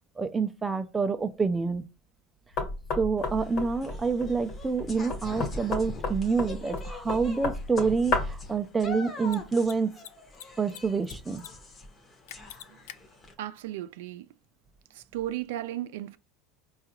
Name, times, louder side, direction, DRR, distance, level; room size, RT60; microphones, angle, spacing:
voice 1, 0.2-1.8 3.0-9.9 10.6-11.4, right 5 dB, 15° right, 0.3 m, -27 dB
Knock, 2.6-8.5, left 3 dB, 50° left, 1.1 m, -32 dB
sound 1, 3.2-13.3, left 3 dB, 20° left, 0.7 m, -43 dB
Mechanisms, 6.8-6.9 9.2-9.4 9.6-9.7 10.0-10.8 11.0-11.5 11.7-11.8 12.3-13.0, left 12 dB, 80° left, 0.4 m, -43 dB
voice 2, 13.4-14.3 14.9-16.2, right 13 dB, 85° right, 0.3 m, -35 dB
4.7 x 2.3 x 2.9 m
supercardioid pair, 145°, 0 cm